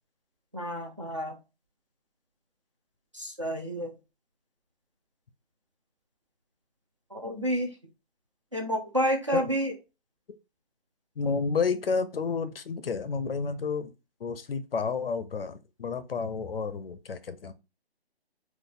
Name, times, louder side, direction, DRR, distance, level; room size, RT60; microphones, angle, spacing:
voice 1, 0.5-1.4 3.1-3.9 7.1-7.7 8.5-9.7, equal, 30° right, 0.4 m, -29 dB
voice 2, 11.2-13.9 14.2-17.5, left 5 dB, 65° left, 0.5 m, -30 dB
3.8 x 2.4 x 2.4 m
figure-of-eight pair, 160°, 32 cm